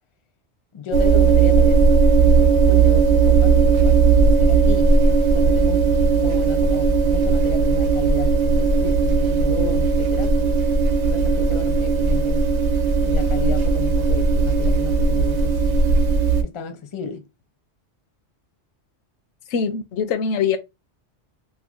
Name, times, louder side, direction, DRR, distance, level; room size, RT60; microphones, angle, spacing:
voice 1, 0.7-1.9 2.3-10.5 11.0-12.5 13.0-15.6 16.4-17.3, left 5 dB, 40° left, 0.5 m, -33 dB
sound 1, 0.9-16.4, right 4 dB, 80° right, 1.0 m, -17 dB
voice 2, 19.5-20.6, left 6 dB, 80° left, 0.9 m, -22 dB
3.0 x 2.2 x 3.5 m
omnidirectional pair, 1.2 m